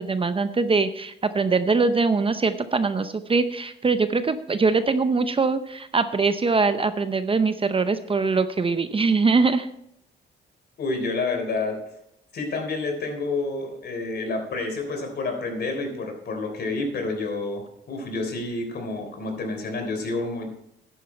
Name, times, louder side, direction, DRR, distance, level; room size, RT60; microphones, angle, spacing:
voice 1, 0.0-9.7, right 4 dB, 25° right, 11 dB, 0.7 m, -22 dB
voice 2, 10.8-11.8 12.3-20.5, left 3 dB, 55° left, 4 dB, 3.6 m, -29 dB
11.5 x 9.5 x 4.3 m, 0.75 s
cardioid pair, 90°, 20 cm